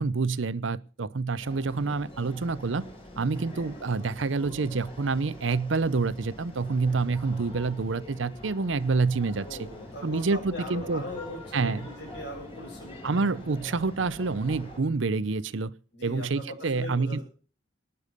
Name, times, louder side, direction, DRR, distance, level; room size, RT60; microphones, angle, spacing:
voice 1, 0.0-2.8 3.2-9.7 10.0-11.0 11.5-11.8 13.0-15.7 16.0-17.2, right 4 dB, 75° right, 18 dB, 0.6 m, -27 dB
sound 1, 1.4-14.8, left 1 dB, 30° left, 4.6 m, -45 dB
voice 2, 9.4-13.3 15.9-17.2, left 1 dB, 60° left, 0 dB, 7.1 m, -40 dB
19.5 x 6.9 x 6.6 m, 0.40 s
head